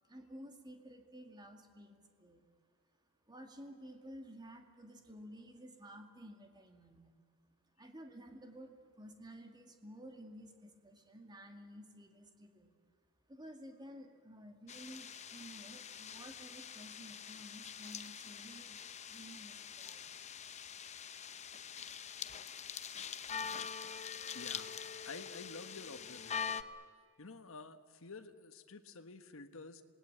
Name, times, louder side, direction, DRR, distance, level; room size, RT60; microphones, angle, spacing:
voice 1, 0.1-2.4 3.3-7.1 7.8-12.7 13.3-18.8 19.1-20.1, equal, 20° right, 4 dB, 2.3 m, -53 dB
sound 1, 14.7-26.6, left 7 dB, 30° left, 0.8 m, -44 dB
voice 2, 24.3-24.7 25.0-26.6 27.2-29.8, left 3 dB, 65° left, 8 dB, 1.4 m, -50 dB
27.0 x 19.5 x 8.8 m, 2.1 s
head